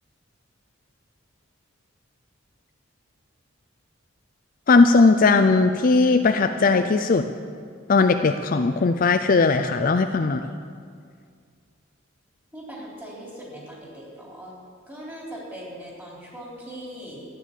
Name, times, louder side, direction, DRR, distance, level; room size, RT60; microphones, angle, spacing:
voice 1, 4.7-7.2 7.9-10.4, left 3 dB, 40° left, 7 dB, 0.4 m, -18 dB
voice 2, 12.5-14.5 14.9-17.2, equal, 10° right, -4 dB, 3.7 m, -40 dB
13.0 x 9.8 x 7.4 m, 2.1 s
head